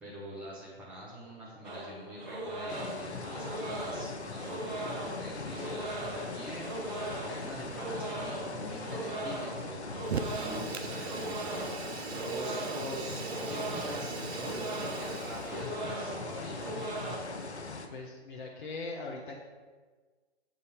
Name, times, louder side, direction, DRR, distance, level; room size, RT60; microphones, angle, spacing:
voice 1, 0.0-10.0 10.3-11.7 12.3-16.9, equal, 5° right, -8 dB, 0.7 m, -44 dB
sound 1, 1.6-17.2, right 2 dB, 40° right, 1.1 m, -39 dB
sound 2, 2.7-17.9, left 3 dB, 80° left, 0.8 m, -41 dB
Fire, 10.0-15.6, right 6 dB, 70° right, 0.6 m, -40 dB
voice 2, 17.9-19.4, left 3 dB, 50° left, -1 dB, 0.7 m, -40 dB
7.5 x 2.7 x 5.0 m, 1.4 s
figure-of-eight pair, 135°, 33 cm